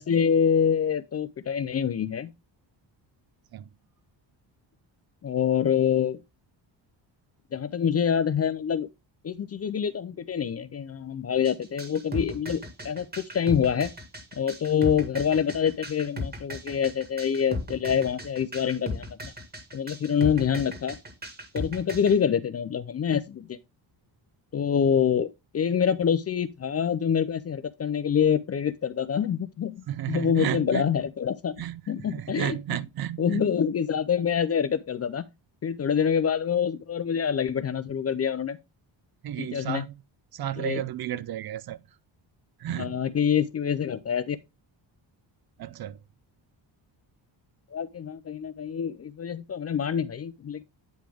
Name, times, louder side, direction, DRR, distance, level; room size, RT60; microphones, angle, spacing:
voice 1, 0.0-2.3 5.2-6.2 7.5-8.9 9.2-13.9 14.4-19.3 19.7-21.0 21.5-23.6 24.5-25.3 25.5-31.5 31.9-32.5 33.2-35.2 35.6-38.6 39.4-39.9 40.6-40.8 42.8-44.4 47.7-50.6, left 7 dB, 35° left, 0.4 m, -26 dB
sound 1, 11.4-22.1, left 1 dB, 20° right, 1.7 m, -36 dB
voice 2, 29.9-30.9 31.6-33.5 39.2-40.0 40.3-41.8 42.6-43.0 45.6-46.0, right 12 dB, 55° right, 0.5 m, -33 dB
9.1 x 5.1 x 3.4 m
wide cardioid pair, 170°, 46 cm